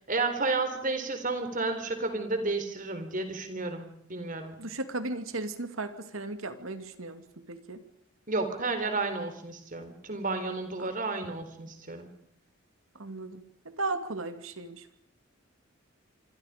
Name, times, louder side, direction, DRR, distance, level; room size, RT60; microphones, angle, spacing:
voice 1, 0.1-4.6 8.3-12.1, right 3 dB, 40° right, 8 dB, 4.2 m, -32 dB
voice 2, 4.6-7.2 7.5-7.8 10.8-10.9 13.0-13.4 13.8-14.9, right 2 dB, 85° right, 9 dB, 2.5 m, -35 dB
27.5 x 26.0 x 5.2 m, 0.70 s
head